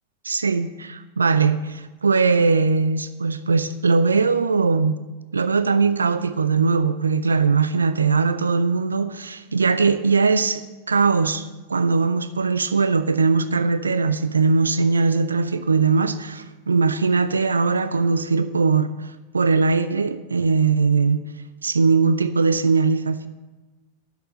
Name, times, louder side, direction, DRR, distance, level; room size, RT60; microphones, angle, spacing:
voice 1, 0.2-4.9 5.3-21.2 21.6-23.3, right 4 dB, 75° right, 11 dB, 0.5 m, -20 dB
12.0 x 6.7 x 7.8 m, 1.2 s
figure-of-eight pair, 90°, 0 cm